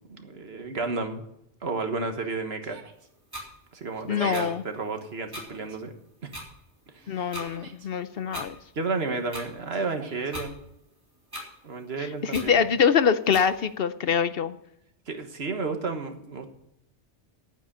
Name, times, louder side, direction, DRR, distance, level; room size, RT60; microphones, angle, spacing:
voice 1, 0.1-1.2 1.6-2.8 3.7-5.9 6.2-6.3 6.9-7.3 8.3-8.4 8.7-10.6 11.6-12.6 15.1-16.5, right 3 dB, 65° right, 6 dB, 1.6 m, -32 dB
Yell, 2.6-3.1 4.0-4.5 5.3-5.8 7.0-7.9 9.7-10.3, right 4 dB, 80° right, 1.7 m, -44 dB
sound 1, 3.3-3.4 4.3-4.4 5.3-5.4 6.3-6.4 7.3-7.5 8.3-8.5 9.3-9.4 10.3-10.5 11.3-11.4 12.3-12.5 13.3-13.4, equal, 20° right, 3.8 m, -37 dB
voice 2, 4.1-4.6 7.1-8.5 12.2-14.6, left 7 dB, 60° left, 12 dB, 0.8 m, -24 dB
10.0 x 9.2 x 6.6 m, 0.81 s
omnidirectional pair, 1.2 m